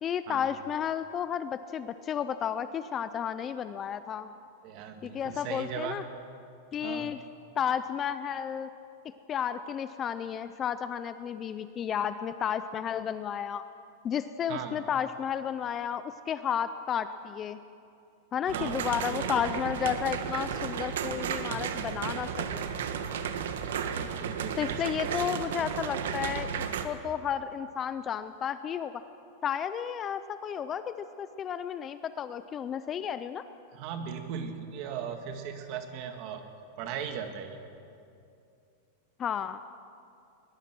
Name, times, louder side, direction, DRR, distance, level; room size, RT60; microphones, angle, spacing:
voice 1, 0.0-4.3 5.0-6.0 6.7-7.2 7.6-8.7 9.3-13.6 14.0-17.6 18.3-22.6 24.6-26.5 26.8-29.0 29.4-33.4 39.2-39.6, left 8 dB, 20° left, 12 dB, 0.4 m, -32 dB
voice 2, 4.6-6.0 6.8-7.1 14.5-14.8 18.5-19.5 24.0-25.2 33.7-36.4 36.8-37.6, right 7 dB, 35° right, 6 dB, 1.8 m, -38 dB
sound 1, 18.5-26.9, right 7 dB, 80° right, 1.5 m, -33 dB
21.0 x 20.5 x 6.1 m, 2.6 s
supercardioid pair, 175°, 0 cm